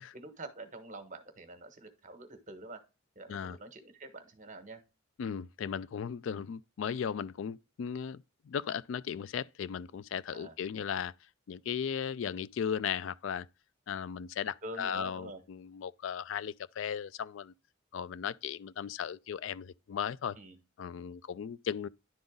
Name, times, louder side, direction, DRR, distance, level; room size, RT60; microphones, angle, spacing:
voice 1, 0.1-2.8 3.1-4.8 10.3-10.5 14.6-15.4 20.3-20.6, right 2 dB, 40° right, 1.2 m, -46 dB
voice 2, 5.2-11.1 11.5-13.5 13.9-17.5 17.9-20.4 20.8-21.9, left 7 dB, 65° left, 0.3 m, -36 dB
10.5 x 3.9 x 3.6 m
head